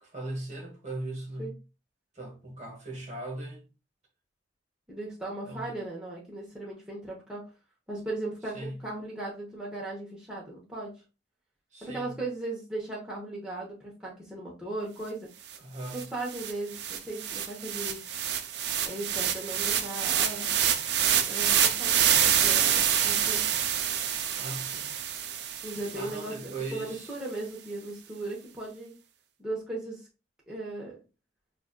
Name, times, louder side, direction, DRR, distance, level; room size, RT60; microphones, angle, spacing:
voice 1, 0.0-1.5 2.1-3.6 5.4-5.7 8.5-8.8 11.7-12.2 15.6-16.1 24.3-24.9 25.9-27.1, right 2 dB, 35° right, 1.0 m, -39 dB
voice 2, 4.9-7.4 7.9-11.0 11.8-15.3 15.9-18.1 18.8-20.5 21.3-23.4 25.6-28.9 29.4-30.1 30.5-31.0, right 2 dB, 5° right, 0.8 m, -37 dB
sound 1, 15.5-15.6 15.9-26.2, right 9 dB, 60° right, 0.4 m, -27 dB
5.8 x 2.4 x 2.2 m
head